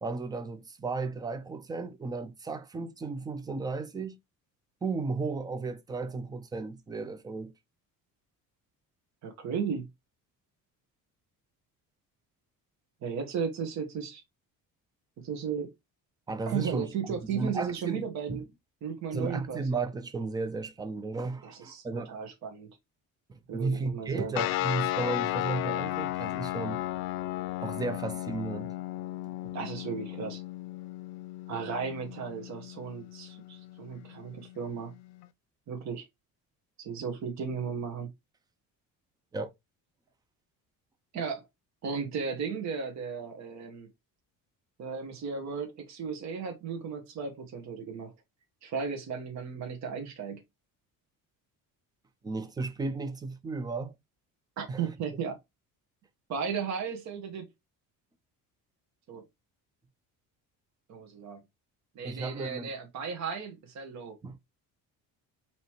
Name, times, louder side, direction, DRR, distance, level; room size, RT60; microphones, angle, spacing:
voice 1, 0.0-4.1 4.8-7.5 16.3-18.0 18.3-18.4 19.1-22.1 23.3-26.8 27.6-28.7 29.4-29.5 39.3-39.5 52.2-53.9 54.7-54.9 62.0-62.7 64.2-64.4, right 3 dB, 10° right, 0.4 m, -34 dB
voice 2, 9.2-9.9 13.0-14.2 15.2-15.7 16.5-18.4 18.8-19.6 21.4-22.7 23.5-24.3 29.5-30.4 31.5-34.9 35.7-36.0 36.8-38.1 41.1-41.4 41.8-43.9 44.8-48.1 48.6-50.4 54.6-55.4 56.3-57.5 59.1-59.2 60.9-61.4 61.9-64.1, right 6 dB, 50° right, 1.3 m, -35 dB
sound 1, 24.3-35.3, left 15 dB, 75° left, 0.6 m, -35 dB
5.3 x 2.9 x 3.0 m
cardioid pair, 165°, 35 cm